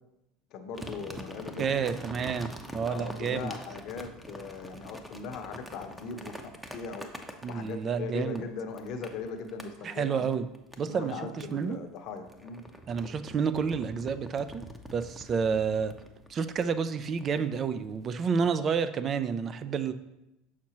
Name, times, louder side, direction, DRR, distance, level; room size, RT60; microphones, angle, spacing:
voice 1, 0.5-1.8 2.9-7.1 7.5-10.2 10.9-12.7, left 5 dB, 60° left, 6 dB, 0.8 m, -39 dB
sound 1, 0.7-7.9 8.3-9.7 10.3-11.1 11.4-18.1, equal, 5° right, 0.7 m, -45 dB
voice 2, 1.6-3.5 7.4-8.4 9.8-10.5 10.8-11.8 12.9-14.6 14.9-15.9 16.3-19.9, right 6 dB, 40° right, 12 dB, 0.4 m, -30 dB
6.1 x 5.8 x 2.9 m, 0.90 s
hypercardioid pair, 85°, 0 cm